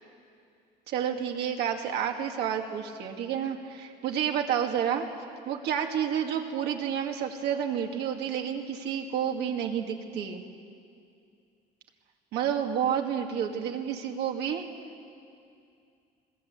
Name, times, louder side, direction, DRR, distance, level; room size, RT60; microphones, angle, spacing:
voice 1, 0.9-5.1 5.4-10.4 12.3-14.6, right 8 dB, 80° right, 3 dB, 2.2 m, -30 dB
22.0 x 20.0 x 8.2 m, 2.4 s
cardioid pair, 110°, 17 cm